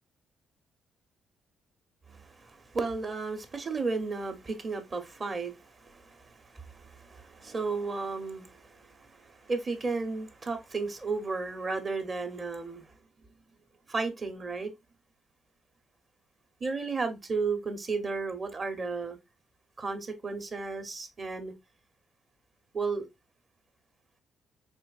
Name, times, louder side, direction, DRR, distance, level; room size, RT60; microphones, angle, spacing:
voice 1, 2.1-12.9 13.9-14.7 16.6-19.2 19.8-21.5 22.7-23.1, right 4 dB, 35° right, 0.9 m, -34 dB
4.4 x 3.0 x 2.4 m
cardioid pair, 90°, 0 cm